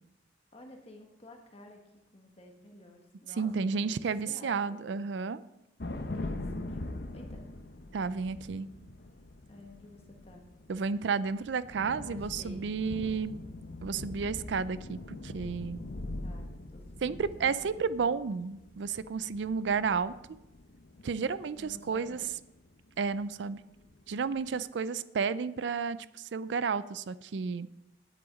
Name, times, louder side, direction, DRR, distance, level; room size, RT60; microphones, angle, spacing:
voice 1, 0.5-1.8 2.1-5.0 5.9-7.4 9.5-10.4 12.0-12.7 16.2-18.3 21.4-22.3, left 1 dB, 35° left, 2 dB, 1.4 m, -52 dB
voice 2, 3.4-5.4 7.9-8.7 10.7-13.3 13.8-15.8 17.0-20.1 21.0-22.2 23.0-23.6 24.1-27.7, right 5 dB, 75° right, 16 dB, 0.4 m, -32 dB
sound 1, 5.8-23.4 23.8-24.6, left 2 dB, 60° left, 0.8 m, -43 dB
9.8 x 8.6 x 5.2 m, 0.92 s
head